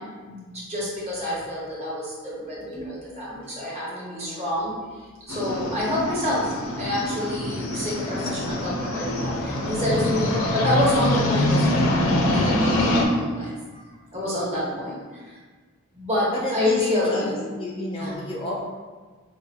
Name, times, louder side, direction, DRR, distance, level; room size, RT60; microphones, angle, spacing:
voice 1, 0.0-13.5 14.1-15.4 15.9-17.4 18.0-18.2, left 1 dB, 30° right, -6 dB, 1.0 m, -28 dB
voice 2, 3.9-4.6 8.0-8.7 13.7-14.8 16.3-18.6, left 1 dB, 25° left, -3 dB, 0.4 m, -33 dB
sound 1, 5.3-13.0, left 1 dB, 80° left, 0.5 m, -24 dB
5.0 x 2.3 x 2.8 m, 1.4 s
head